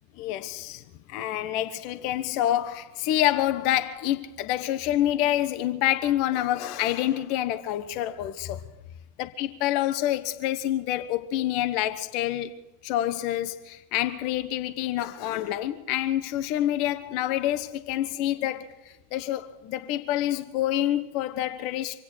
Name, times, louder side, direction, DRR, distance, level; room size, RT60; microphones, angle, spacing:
voice 1, 0.2-0.8 1.1-8.6 9.2-12.5 12.8-22.0, left 13 dB, 45° left, 0.9 m, -27 dB
25.5 x 8.6 x 6.3 m
figure-of-eight pair, 90°, 0 cm